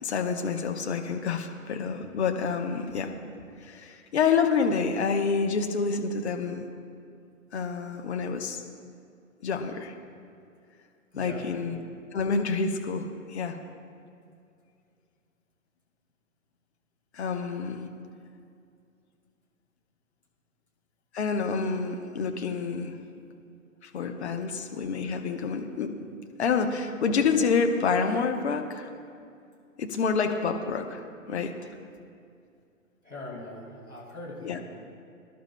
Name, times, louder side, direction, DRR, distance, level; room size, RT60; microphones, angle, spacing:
voice 1, 0.0-3.1 3.6-6.6 7.5-8.6 9.4-9.9 11.2-11.8 12.1-13.6 17.1-17.9 21.1-22.9 23.8-26.0 26.4-28.9 29.8-31.0 31.3-31.5 34.4-34.6, left 5 dB, 50° left, 5 dB, 1.0 m, -28 dB
voice 2, 11.1-11.5 33.0-34.6, left 2 dB, 90° left, -4 dB, 3.1 m, -41 dB
20.5 x 11.0 x 2.2 m, 2.4 s
figure-of-eight pair, 120°, 42 cm